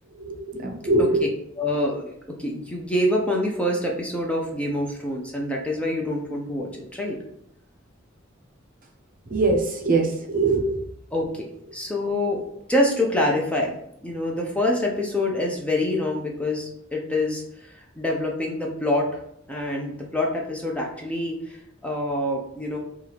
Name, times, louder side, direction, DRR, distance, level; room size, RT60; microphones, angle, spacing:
voice 1, 0.2-1.3 9.3-10.8, right 2 dB, 45° right, 2 dB, 0.7 m, -22 dB
voice 2, 1.6-7.2 11.1-11.5 11.7-12.4 12.7-13.7 14.0-19.2 19.5-22.8, left 1 dB, 5° left, -1 dB, 0.6 m, -26 dB
4.4 x 2.4 x 3.4 m, 0.74 s
head